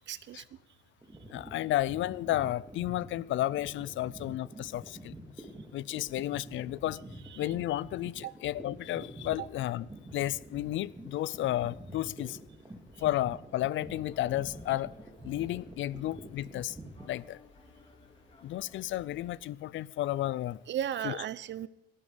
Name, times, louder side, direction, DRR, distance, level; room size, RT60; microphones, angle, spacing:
voice 1, 0.1-0.4 7.3-7.4 8.2-8.3 9.4-9.5 20.7-21.7, right 10 dB, 65° right, 0.7 m, -35 dB
sound 1, 1.0-17.1, right 1 dB, 15° right, 2.7 m, -48 dB
voice 2, 1.3-5.1 5.7-7.0 7.4-12.4 13.0-14.9 15.2-16.8 17.1-17.4 18.4-20.6 21.0-21.2, left 14 dB, 75° left, 0.5 m, -32 dB
sound 2, 13.8-19.4, left 3 dB, 25° left, 2.9 m, -58 dB
19.0 x 11.0 x 5.1 m
cardioid pair, 90°, 20 cm